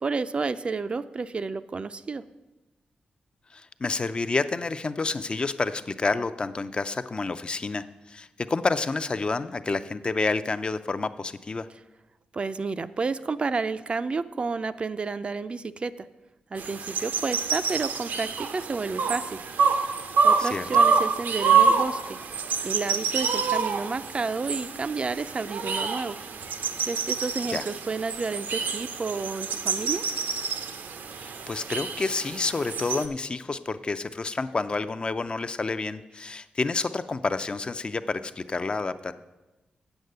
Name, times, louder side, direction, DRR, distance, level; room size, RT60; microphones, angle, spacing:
voice 1, 0.0-2.2 12.3-16.1 16.5-19.4 20.2-22.2 22.6-26.2 26.9-30.0, right 4 dB, 35° right, 13 dB, 0.3 m, -31 dB
voice 2, 3.5-11.7 20.4-20.7 27.5-27.6 31.2-39.1, left 3 dB, 35° left, 12 dB, 0.4 m, -29 dB
sound 1, 16.6-33.1, right 5 dB, 90° right, 0.7 m, -27 dB
7.9 x 7.4 x 6.6 m, 1.1 s
wide cardioid pair, 115°, 3 cm